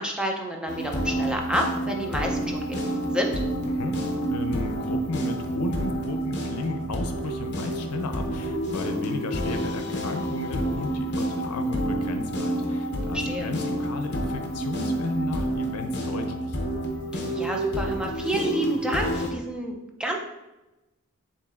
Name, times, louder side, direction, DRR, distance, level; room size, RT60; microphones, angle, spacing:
voice 1, 0.0-2.9 3.1-3.3 13.1-13.5 17.1-20.2, equal, 5° right, 1 dB, 0.4 m, -29 dB
sound 1, 0.7-19.3, right 1 dB, 50° left, 0.7 m, -29 dB
voice 2, 3.7-4.0 4.3-16.6, left 2 dB, 90° left, 7 dB, 0.5 m, -34 dB
7.1 x 2.7 x 2.4 m, 1.0 s
head